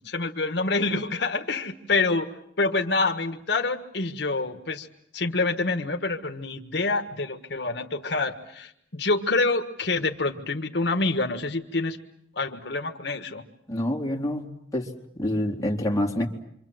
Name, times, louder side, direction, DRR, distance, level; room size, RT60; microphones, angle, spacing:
voice 1, 0.0-2.3 2.6-4.9 5.1-12.0 12.3-13.4, left 3 dB, 70° left, 5 dB, 1.5 m, -27 dB
voice 2, 13.7-16.3, left 1 dB, 20° left, -1 dB, 3.7 m, -27 dB
27.5 x 26.0 x 7.9 m, 0.75 s
head